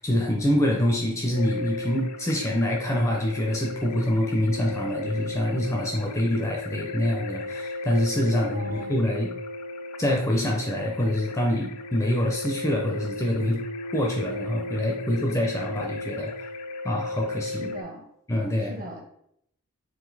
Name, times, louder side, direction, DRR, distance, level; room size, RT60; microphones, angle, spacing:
voice 1, 0.0-9.3 10.0-13.6 13.9-16.3 16.8-17.7 18.3-18.7, left 1 dB, 15° left, 0 dB, 0.4 m, -25 dB
sound 1, 1.3-17.8, left 2 dB, 90° left, 0.4 m, -36 dB
voice 2, 8.4-9.0 17.6-18.0 18.7-19.0, equal, 40° right, 1 dB, 0.8 m, -39 dB
3.9 x 2.5 x 4.0 m, 0.73 s
head